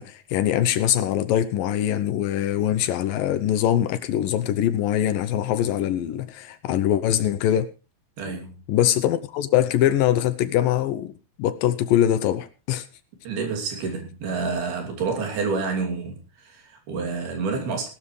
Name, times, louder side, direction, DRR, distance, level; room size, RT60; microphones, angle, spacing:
voice 1, 0.0-7.7 8.7-11.1 11.4-12.9, left 11 dB, 75° left, 2.4 m, -23 dB
voice 2, 8.2-8.6 13.2-17.9, right 4 dB, 80° right, 4.9 m, -28 dB
18.5 x 12.5 x 3.2 m
omnidirectional pair, 4.4 m